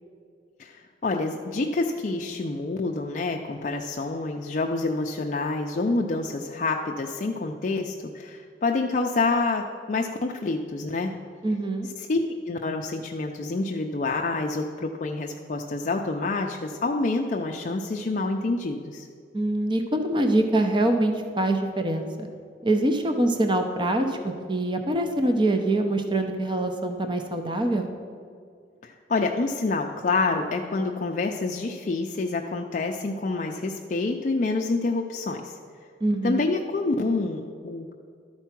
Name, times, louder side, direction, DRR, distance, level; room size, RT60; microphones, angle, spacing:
voice 1, 0.6-11.1 11.8-12.2 12.4-19.1 28.8-35.5 36.2-37.9, left 3 dB, 45° left, 2 dB, 0.4 m, -27 dB
voice 2, 11.4-11.9 19.3-22.3 22.6-27.9 36.0-36.4, right 1 dB, 25° right, 5 dB, 0.6 m, -24 dB
12.0 x 4.5 x 5.9 m, 2.2 s
head